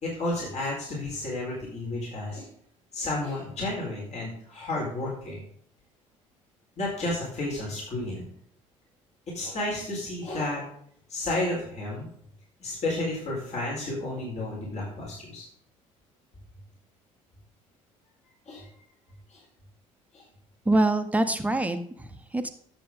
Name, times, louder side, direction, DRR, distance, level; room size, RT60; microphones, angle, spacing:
voice 1, 0.0-2.5 2.9-5.4 6.8-8.3 9.3-10.6 11.1-12.1 12.6-15.4 18.5-18.6 19.3-19.4 20.1-20.2, left 2 dB, 45° left, -4 dB, 4.4 m, -32 dB
voice 2, 20.6-22.5, right 2 dB, 10° right, 8 dB, 1.2 m, -25 dB
10.5 x 7.7 x 3.8 m, 0.65 s
figure-of-eight pair, 55°, 16 cm